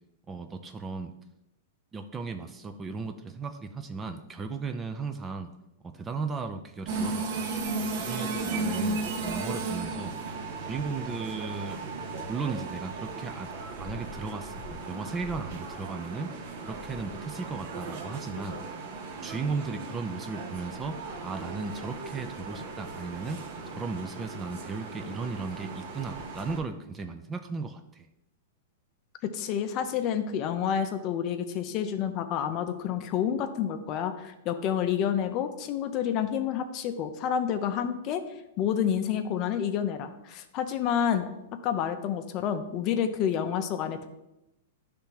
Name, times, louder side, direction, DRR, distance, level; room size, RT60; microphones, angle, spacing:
voice 1, 0.3-1.1 1.9-5.5 5.8-7.5 8.0-10.1 10.7-11.8 12.2-13.5 13.8-18.6 19.2-21.0 21.2-23.4 23.8-28.1, right 4 dB, 15° right, 8 dB, 0.4 m, -36 dB
sound 1, 6.9-26.6, right 3 dB, 50° right, 0.9 m, -36 dB
voice 2, 29.2-38.2 38.6-44.1, left 8 dB, 35° left, 8 dB, 0.5 m, -29 dB
10.0 x 3.4 x 2.9 m, 0.89 s
hypercardioid pair, 140°, 0 cm